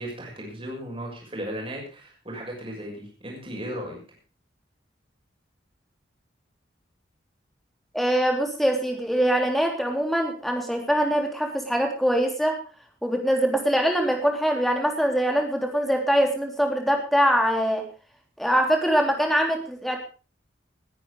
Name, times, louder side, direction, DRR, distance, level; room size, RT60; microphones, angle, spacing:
voice 1, 0.0-4.0, equal, 30° right, -1 dB, 6.5 m, -36 dB
voice 2, 7.9-12.6 13.0-17.8 18.4-20.0, equal, ahead, 2 dB, 3.3 m, -23 dB
20.5 x 10.0 x 4.9 m, 0.35 s
head